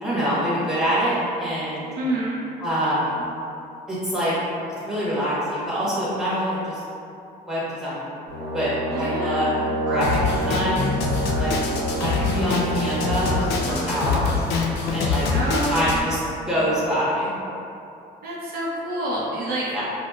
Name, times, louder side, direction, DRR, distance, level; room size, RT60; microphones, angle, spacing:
voice 1, 0.0-1.9 2.6-3.3 3.9-4.3 4.9-6.8 7.5-8.1 8.5-9.5 9.8-10.9 11.4-11.5 12.0-13.4 13.7-14.4 14.9-15.3 15.6-16.2 16.5-17.3 19.7-19.8, equal, 5° right, -11 dB, 1.3 m, -25 dB
voice 2, 2.0-2.4 8.9-9.7 15.3-16.1 16.4-16.6 18.2-19.8, right 1 dB, 65° right, -6 dB, 0.7 m, -28 dB
Brass instrument, 8.3-13.8, right 1 dB, 90° right, 0.9 m, -28 dB
Drum kit, 10.0-16.0, left 4 dB, 85° left, 0.4 m, -25 dB
4.8 x 2.1 x 2.3 m, 2.7 s
cardioid pair, 110°, 17 cm